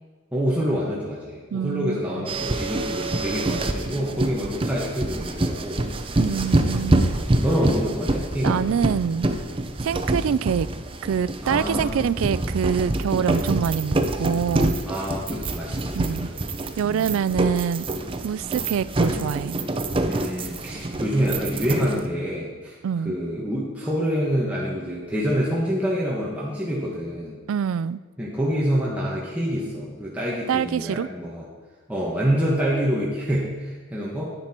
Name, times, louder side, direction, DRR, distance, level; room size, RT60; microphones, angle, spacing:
voice 1, 0.3-5.9 6.7-7.0 7.4-8.8 11.4-12.0 14.9-16.5 16.8-17.1 20.1-22.8 23.0-27.4 28.2-31.4 31.9-34.3, equal, 5° right, -6 dB, 1.4 m, -27 dB
voice 2, 1.5-2.3 6.2-7.1 8.4-9.3 9.8-10.7 11.0-14.7 15.9-16.3 16.8-17.9 18.2-19.6 22.8-23.2 27.5-28.0 30.5-31.1, right 7 dB, 75° right, 18 dB, 0.3 m, -25 dB
sound 1, 2.3-22.1, right 2 dB, 25° right, 0.6 m, -26 dB
10.0 x 9.1 x 4.4 m, 1.5 s
head